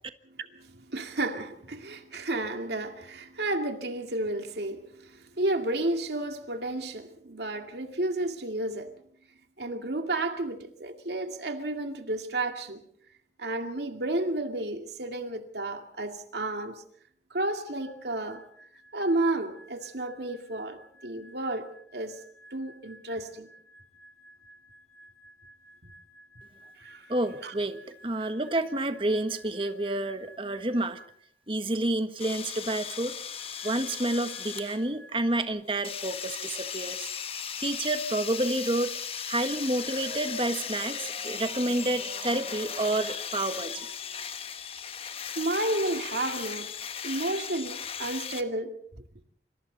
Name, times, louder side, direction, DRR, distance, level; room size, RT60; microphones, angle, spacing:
voice 1, 0.4-8.9 9.6-12.8 13.4-16.8 17.3-18.4 18.9-22.2 22.5-23.5 26.8-27.1 27.4-27.5 45.4-46.7 47.0-48.8, right 2 dB, 70° right, 2.3 m, -32 dB
sound 1, 17.7-31.4 33.3-35.5, right 1 dB, 5° left, 7.6 m, -55 dB
voice 2, 27.1-27.8 28.0-31.0 31.5-33.1 33.6-37.1 37.6-39.0 39.3-44.3, right 1 dB, 30° right, 1.5 m, -29 dB
sound 2, 32.2-34.8 35.8-48.4, left 7 dB, 35° left, 1.2 m, -37 dB
27.5 x 26.0 x 4.1 m
head